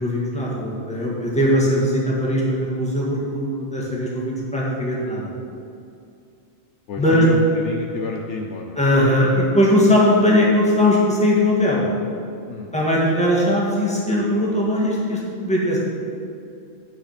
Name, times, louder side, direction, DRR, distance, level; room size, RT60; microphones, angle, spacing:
voice 1, 0.0-5.3 7.0-7.3 8.8-11.9 12.7-15.8, left 1 dB, 5° left, -6 dB, 1.9 m, -19 dB
voice 2, 6.9-8.8 12.5-12.7, left 5 dB, 65° left, 2 dB, 0.9 m, -30 dB
8.6 x 5.9 x 5.9 m, 2.5 s
omnidirectional pair, 1.4 m